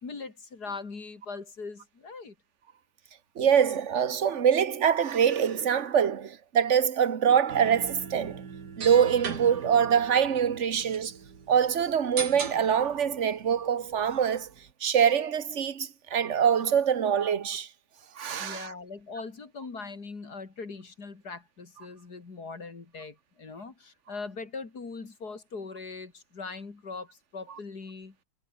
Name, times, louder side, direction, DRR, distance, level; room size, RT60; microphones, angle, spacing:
voice 1, 0.0-2.3 18.4-28.1, left 4 dB, 60° left, 3.6 m, -41 dB
voice 2, 3.3-8.4 8.8-11.2 11.5-14.5 14.8-17.7 18.1-18.7, right 8 dB, 45° right, 1.6 m, -24 dB
sound 1, 7.5-14.7, right 6 dB, 65° right, 2.7 m, -40 dB
omnidirectional pair, 2.0 m